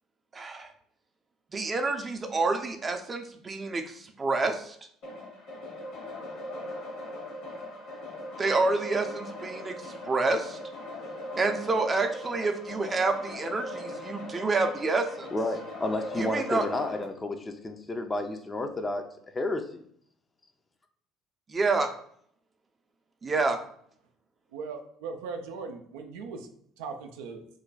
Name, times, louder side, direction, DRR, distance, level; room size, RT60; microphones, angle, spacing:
voice 1, 0.3-0.7 1.5-4.8 8.4-10.6 11.4-15.3 16.2-16.6 21.5-21.9 23.2-23.6, right 3 dB, 30° right, 6 dB, 0.5 m, -28 dB
sound 1, 5.0-17.0, left 1 dB, 70° left, 1.4 m, -40 dB
voice 2, 15.3-19.0 19.3-19.8, left 2 dB, 25° left, 6 dB, 0.5 m, -31 dB
voice 3, 24.5-26.5 26.8-27.4, right 4 dB, 80° right, 4 dB, 0.4 m, -38 dB
3.1 x 2.2 x 3.9 m, 0.65 s
hypercardioid pair, 65°, 0 cm